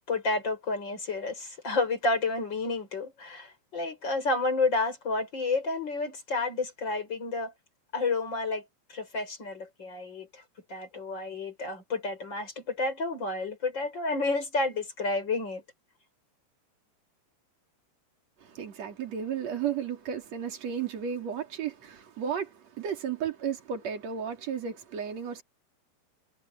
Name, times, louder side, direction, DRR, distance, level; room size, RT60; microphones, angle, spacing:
voice 1, 0.1-7.5 7.9-8.6 8.9-10.4 10.7-15.6, left 3 dB, 25° left, 6.0 m, -30 dB
voice 2, 18.4-25.4, right 8 dB, 40° right, 4.2 m, -34 dB
omnidirectional pair, 5.2 m